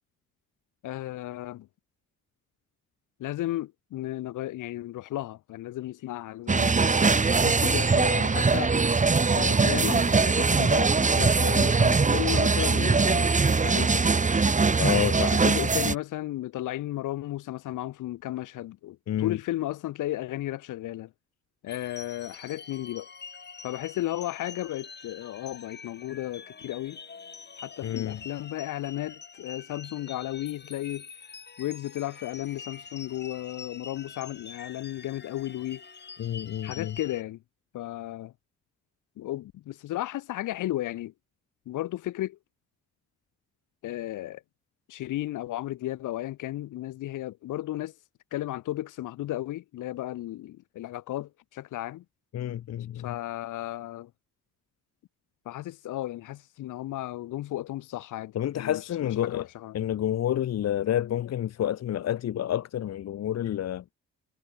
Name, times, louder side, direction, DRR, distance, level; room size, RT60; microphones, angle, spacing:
voice 1, 0.8-1.7 3.2-6.7 7.4-8.7 9.4-14.1 15.3-21.1 21.6-23.1 23.6-27.0 27.6-31.1 31.6-35.8 36.6-37.4 37.7-38.3 39.2-41.1 41.7-42.4 43.8-44.4 44.9-47.9 48.3-52.0 52.9-54.1 55.4-59.7, left 15 dB, 85° left, 4.5 m, -34 dB
street music, 6.5-15.9, right 4 dB, 25° right, 2.1 m, -22 dB
voice 2, 14.8-15.4 19.1-19.4 27.8-28.2 36.2-36.9 52.3-53.1 58.3-59.4 59.7-63.8, left 11 dB, 60° left, 1.0 m, -29 dB
sound 1, 21.7-37.2, left 5 dB, 35° left, 7.3 m, -46 dB
cardioid pair, 90°, 30 cm